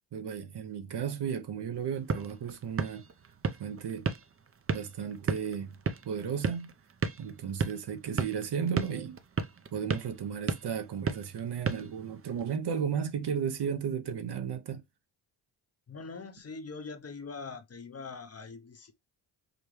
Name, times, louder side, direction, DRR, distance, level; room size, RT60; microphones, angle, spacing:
voice 1, 0.1-3.1 3.6-4.1 4.7-5.8 6.0-6.7 7.2-9.2 9.7-14.8, right 7 dB, 55° right, 0.9 m, -34 dB
sound 1, 1.7-12.6, right 5 dB, 30° right, 0.6 m, -36 dB
voice 2, 15.9-18.9, left 4 dB, 30° left, 0.7 m, -43 dB
5.1 x 2.2 x 3.2 m
supercardioid pair, 65°, 48 cm